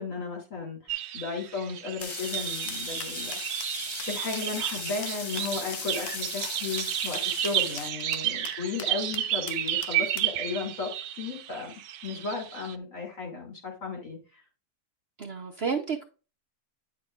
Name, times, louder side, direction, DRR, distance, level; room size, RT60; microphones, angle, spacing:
voice 1, 0.0-3.8 4.1-11.7 12.0-14.4, left 4 dB, 55° left, 3.4 m, -35 dB
sound 1, 0.9-12.8, right 12 dB, 85° right, 1.2 m, -32 dB
sound 2, 2.0-10.4, left 8 dB, 75° left, 1.3 m, -42 dB
sound 3, 2.0-7.9, left 3 dB, 40° left, 0.4 m, -38 dB
voice 2, 15.2-16.0, right 5 dB, 50° right, 0.8 m, -31 dB
9.5 x 6.2 x 2.4 m
omnidirectional pair, 1.6 m